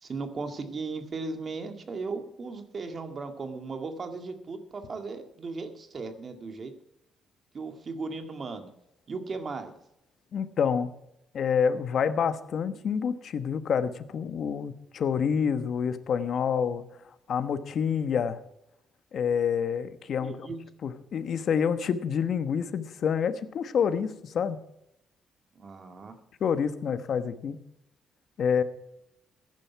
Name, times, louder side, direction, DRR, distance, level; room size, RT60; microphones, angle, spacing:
voice 1, 0.0-6.7 7.5-8.7 9.1-9.7 20.2-20.6 25.6-26.2, right 4 dB, 45° right, 6 dB, 2.0 m, -36 dB
voice 2, 10.3-10.9 11.3-16.8 17.3-18.4 19.1-20.5 20.8-24.6 26.4-27.6 28.4-28.6, left 7 dB, 60° left, 11 dB, 1.1 m, -27 dB
15.0 x 10.5 x 4.6 m, 0.82 s
cardioid pair, 90°, 0 cm